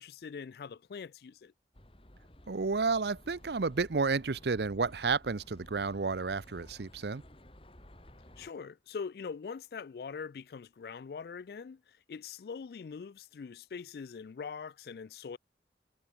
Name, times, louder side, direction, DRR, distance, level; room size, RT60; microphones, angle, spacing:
voice 1, 0.0-1.5 8.4-11.8 12.1-15.4, left 5 dB, 60° left, 0.3 m, -42 dB
sound 1, 1.7-8.5, left 1 dB, 30° left, 3.4 m, -55 dB
voice 2, 2.5-7.2, right 4 dB, 70° right, 0.7 m, -31 dB
head